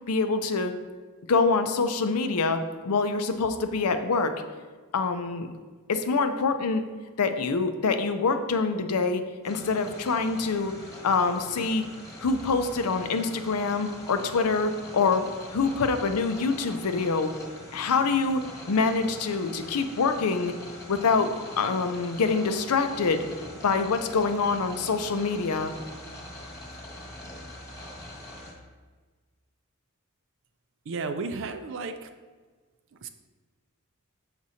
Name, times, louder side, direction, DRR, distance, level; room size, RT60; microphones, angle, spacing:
voice 1, 0.1-0.7 1.3-4.3 4.9-5.5 5.9-6.8 7.2-10.7 11.0-11.8 12.2-15.2 15.5-17.3 17.7-20.5 20.9-23.3 23.6-25.7, left 4 dB, 80° left, 8 dB, 0.6 m, -25 dB
sound 1, 9.4-28.5, left 1 dB, 15° left, 1.3 m, -43 dB
voice 2, 30.9-32.1 33.0-33.1, right 4 dB, 60° right, 8 dB, 0.5 m, -33 dB
6.4 x 5.9 x 2.7 m, 1.4 s
head